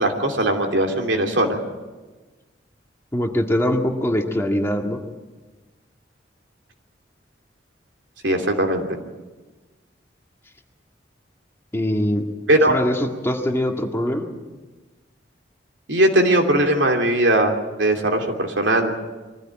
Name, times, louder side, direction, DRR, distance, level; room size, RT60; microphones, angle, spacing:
voice 1, 0.0-1.6 8.2-9.0 12.5-12.8 15.9-17.5 17.8-18.9, right 1 dB, 80° right, 3 dB, 2.9 m, -19 dB
voice 2, 3.1-5.0 11.7-12.2 12.7-14.3, equal, 15° left, 2 dB, 1.8 m, -22 dB
23.5 x 15.0 x 8.9 m, 1.2 s
head